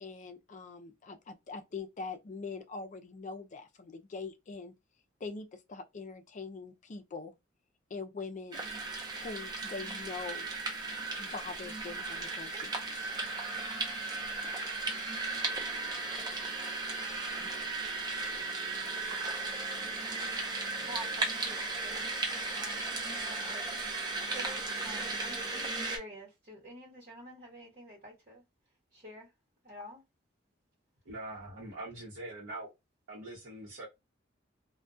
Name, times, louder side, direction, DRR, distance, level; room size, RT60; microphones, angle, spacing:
voice 1, 0.0-4.7 5.2-7.3 7.9-8.6 9.1-10.5 11.2-13.1, left 4 dB, 40° left, 0.4 m, -43 dB
sound 1, 8.5-26.0, right 3 dB, 20° right, 0.6 m, -36 dB
voice 2, 20.8-22.2 22.5-22.9 23.2-28.4 28.9-29.3 29.6-30.0, equal, 45° right, 1.1 m, -48 dB
voice 3, 31.1-32.7 33.1-33.9, right 2 dB, 85° right, 0.8 m, -43 dB
2.2 x 2.2 x 2.5 m
head